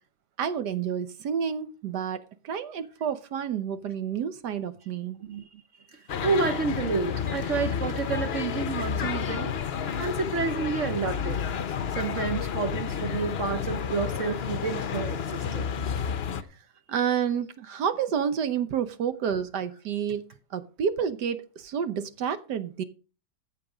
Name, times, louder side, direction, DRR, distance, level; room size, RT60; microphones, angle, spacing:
voice 1, 0.4-5.2 16.9-20.3 20.5-22.8, right 8 dB, 70° right, 1.4 m, -29 dB
voice 2, 5.2-5.6 5.9-11.4 12.0-15.7, right 5 dB, 50° right, 1.0 m, -30 dB
sound 1, 6.1-16.4, left 7 dB, 50° left, 0.7 m, -31 dB
14.5 x 7.2 x 4.9 m
omnidirectional pair, 1.9 m